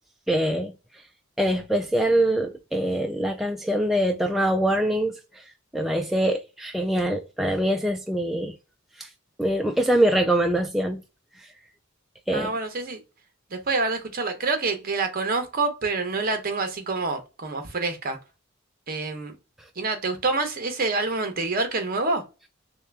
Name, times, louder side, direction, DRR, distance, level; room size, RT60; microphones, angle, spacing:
voice 1, 0.3-0.7 1.4-5.4 5.7-8.5 9.0-9.1 9.4-11.0 12.3-12.5, right 1 dB, ahead, 0.3 m, -24 dB
voice 2, 12.3-13.0 13.5-18.2 18.9-19.4 19.8-22.2, right 3 dB, 45° right, 0.9 m, -27 dB
3.3 x 2.8 x 3.4 m
head